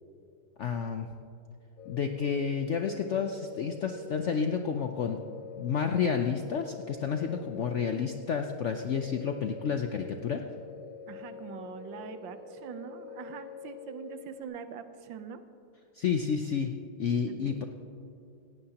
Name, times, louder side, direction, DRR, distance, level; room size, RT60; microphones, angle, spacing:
voice 1, 0.6-1.1 1.9-5.2 5.6-10.4 15.9-16.7 17.0-17.6, left 6 dB, 85° left, 5 dB, 0.6 m, -30 dB
sound 1, 1.8-14.4, left 7 dB, 55° left, 1.3 m, -46 dB
voice 2, 11.1-15.4 17.3-17.5, right 7 dB, 80° right, 10 dB, 1.5 m, -43 dB
17.5 x 16.5 x 2.9 m, 2.7 s
omnidirectional pair, 2.0 m